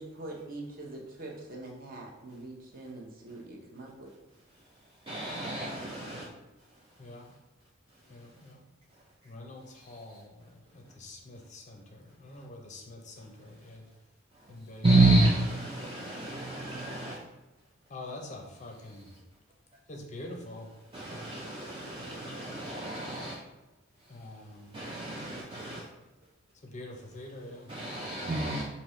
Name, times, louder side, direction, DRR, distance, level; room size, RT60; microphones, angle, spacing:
voice 1, 0.0-4.1, right 2 dB, 40° right, -1 dB, 0.8 m, -43 dB
voice 2, 4.5-6.3 6.6-7.4 7.9-8.5 8.9-9.3 9.7-10.2 10.8-10.9 13.3-13.8 14.3-17.2 18.8-19.2 20.9-23.4 24.0-25.9 27.7-28.7, right 2 dB, 25° right, -4 dB, 0.4 m, -31 dB
voice 3, 7.0-7.3 8.1-8.7 9.2-13.9 14.5-14.9 17.9-19.1 19.9-20.7 24.1-24.8 26.6-27.7, left 2 dB, 35° left, 2 dB, 0.5 m, -45 dB
5.3 x 2.8 x 3.1 m, 1.0 s
head